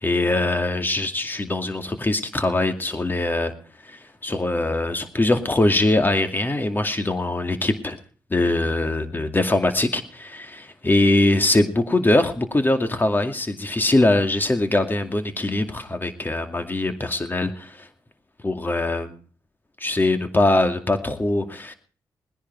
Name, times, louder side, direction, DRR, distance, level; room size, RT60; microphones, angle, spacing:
voice 1, 0.0-3.5 3.8-8.0 8.3-17.9 18.4-19.2 19.8-21.7, left 2 dB, 25° left, 7 dB, 2.4 m, -22 dB
20.0 x 10.5 x 4.6 m, 0.40 s
cardioid pair, 70°, 8 cm